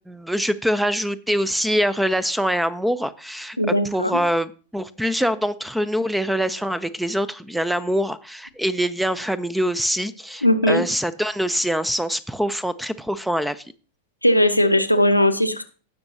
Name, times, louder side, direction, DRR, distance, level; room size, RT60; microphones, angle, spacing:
voice 1, 0.1-13.6, equal, ahead, 17 dB, 0.5 m, -24 dB
voice 2, 3.6-4.1 10.4-10.8 14.2-15.6, left 1 dB, 90° left, 6 dB, 0.8 m, -18 dB
18.0 x 6.1 x 2.8 m, 0.37 s
figure-of-eight pair, 90°, 0 cm